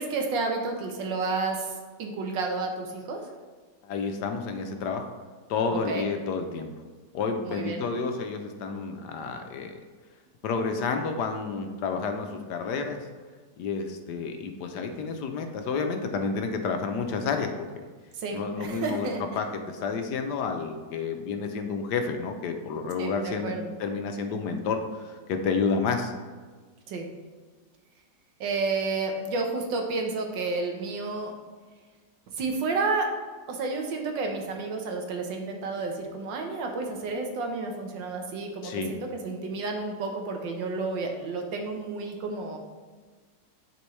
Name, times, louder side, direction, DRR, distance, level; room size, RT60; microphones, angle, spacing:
voice 1, 0.0-3.2 5.7-6.1 7.4-7.8 18.1-19.2 23.0-23.7 26.9-27.1 28.4-31.3 32.4-33.1 33.5-42.6, right 3 dB, 85° right, 2 dB, 1.7 m, -31 dB
voice 2, 3.8-5.1 5.5-6.7 7.1-9.8 10.4-13.0 13.6-17.7 18.3-19.1 19.3-23.5 23.8-26.1 38.6-38.9, left 5 dB, 70° left, 5 dB, 1.2 m, -30 dB
10.0 x 4.4 x 3.2 m, 1.4 s
omnidirectional pair, 2.0 m